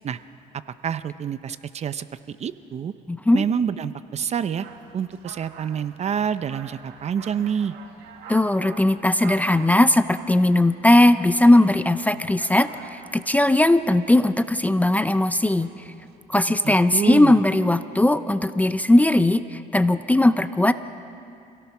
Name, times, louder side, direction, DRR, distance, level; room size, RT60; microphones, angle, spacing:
voice 1, 0.8-2.9 3.3-4.7 4.9-7.7 16.5-17.4, right 8 dB, 40° right, 13 dB, 0.6 m, -27 dB
voice 2, 3.1-3.4 8.3-15.7 16.3-20.7, left 1 dB, 10° left, 12 dB, 0.5 m, -18 dB
sound 1, 4.6-16.2, right 6 dB, 80° right, 1.9 m, -46 dB
27.0 x 17.0 x 6.0 m, 2.6 s
cardioid pair, 110°, 17 cm